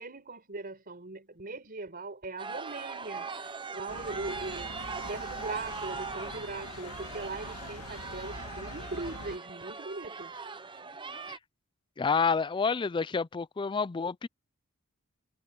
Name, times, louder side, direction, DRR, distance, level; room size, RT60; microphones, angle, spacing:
voice 1, 0.0-10.4, right 3 dB, 40° right, 4.3 m, -40 dB
sound 1, 2.4-11.4, right 5 dB, 20° right, 0.8 m, -40 dB
sound 2, 3.9-9.4, left 3 dB, 90° left, 2.0 m, -45 dB
voice 2, 12.0-14.3, left 5 dB, 20° left, 0.3 m, -29 dB
head